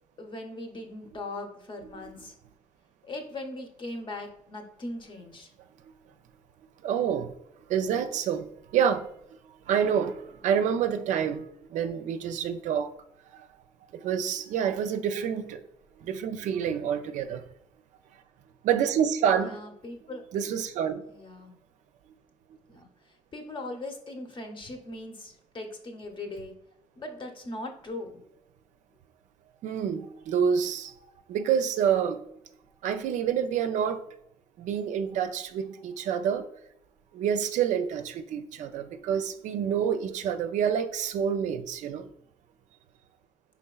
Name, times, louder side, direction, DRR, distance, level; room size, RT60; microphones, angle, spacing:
voice 1, 0.2-2.3 3.0-5.5 19.4-20.2 21.1-21.6 22.7-26.5 27.0-28.3, left 2 dB, 40° left, 4 dB, 0.8 m, -40 dB
voice 2, 6.8-7.4 7.7-9.1 9.4-12.9 13.3-13.5 13.9-15.6 16.0-17.4 18.6-19.6 20.3-21.0 29.6-30.9 31.3-32.2 32.8-34.0 34.6-36.5 37.1-42.1, right 8 dB, 75° right, 9 dB, 0.4 m, -28 dB
4.5 x 3.4 x 2.3 m, 0.76 s
supercardioid pair, 65°, 13 cm